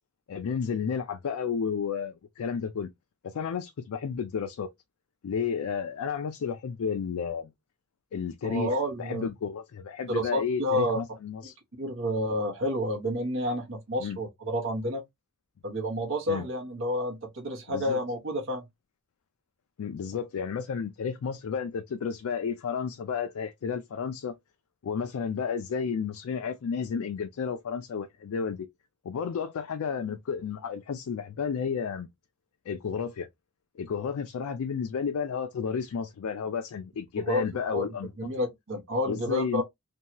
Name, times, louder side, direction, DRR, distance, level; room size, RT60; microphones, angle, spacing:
voice 1, 0.3-2.9 3.2-4.7 5.2-7.5 8.1-11.5 14.0-14.2 16.3-16.5 17.7-18.0 19.8-24.3 24.8-28.7 29.0-32.1 32.7-33.3 33.8-38.3 39.0-39.6, left 6 dB, 70° left, 0.4 m, -32 dB
voice 2, 8.4-9.3 10.1-11.0 11.8-15.0 15.6-18.6 37.3-37.4 37.7-37.9 38.2-39.6, equal, 60° right, 0.9 m, -29 dB
2.7 x 2.3 x 2.8 m
head